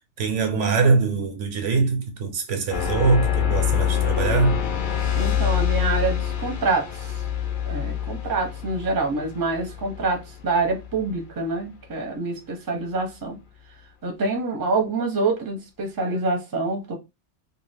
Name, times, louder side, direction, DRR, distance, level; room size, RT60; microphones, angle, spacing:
voice 1, 0.2-4.6, right 4 dB, 85° right, 1.1 m, -22 dB
sound 1, 2.7-11.2, left 9 dB, 60° left, 0.6 m, -26 dB
voice 2, 5.2-7.2 7.7-13.4 14.0-16.9, right 3 dB, 25° right, 0.5 m, -26 dB
2.5 x 2.3 x 3.3 m
omnidirectional pair, 1.2 m